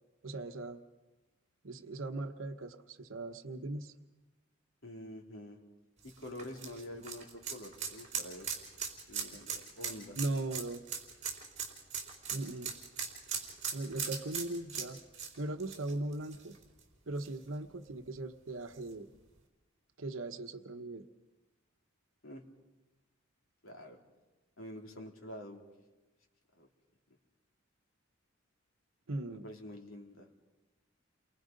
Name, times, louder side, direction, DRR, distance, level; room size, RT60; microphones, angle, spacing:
voice 1, 0.2-0.8 1.6-3.9 10.2-10.8 12.3-12.7 13.7-15.0 15.4-16.6 17.1-19.1 20.0-21.1 29.1-29.5, right 2 dB, 80° right, 7 dB, 1.1 m, -39 dB
voice 2, 4.8-5.6 6.0-8.5 9.1-10.2 22.2-22.4 23.6-24.0 24.6-25.6 26.6-26.7 29.3-30.3, left 1 dB, 85° left, 2 dB, 3.3 m, -47 dB
sound 1, 6.0-16.8 17.2-17.3 18.7-18.8, right 6 dB, 35° right, 4.0 m, -40 dB
29.5 x 23.0 x 5.3 m, 1.1 s
head